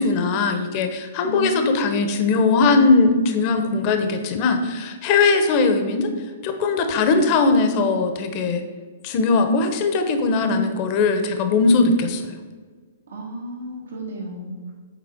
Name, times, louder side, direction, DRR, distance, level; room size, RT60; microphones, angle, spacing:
voice 1, 0.0-6.1 6.4-8.6 9.0-12.4, left 3 dB, 40° left, 6 dB, 0.8 m, -20 dB
voice 2, 1.2-2.2 10.4-11.0 13.1-14.7, right 1 dB, 90° right, -3 dB, 2.0 m, -31 dB
7.0 x 4.2 x 4.4 m, 1.5 s
hypercardioid pair, 135°, 0 cm